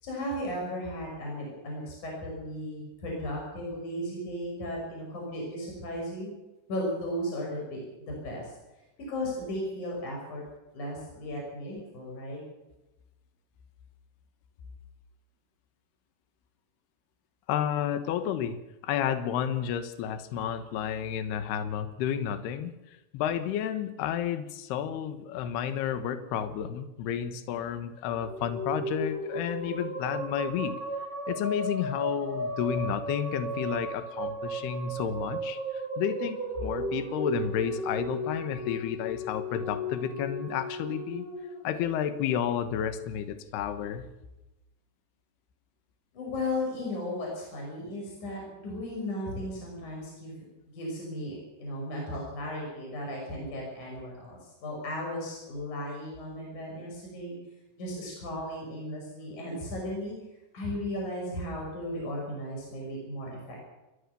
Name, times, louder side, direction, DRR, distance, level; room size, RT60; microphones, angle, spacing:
voice 1, 0.0-6.3 6.7-8.5 9.1-10.4 10.7-12.4 46.1-50.5 50.7-57.4 57.8-60.2 60.5-63.6, left 1 dB, 45° left, -2 dB, 7.2 m, -35 dB
voice 2, 17.5-18.6 18.8-30.7 31.3-41.3 41.6-44.0, left 9 dB, 75° left, 10 dB, 3.2 m, -31 dB
sound 1, 28.1-42.6, equal, 30° left, 2.8 m, -35 dB
29.0 x 13.0 x 6.9 m, 1.0 s
omnidirectional pair, 4.9 m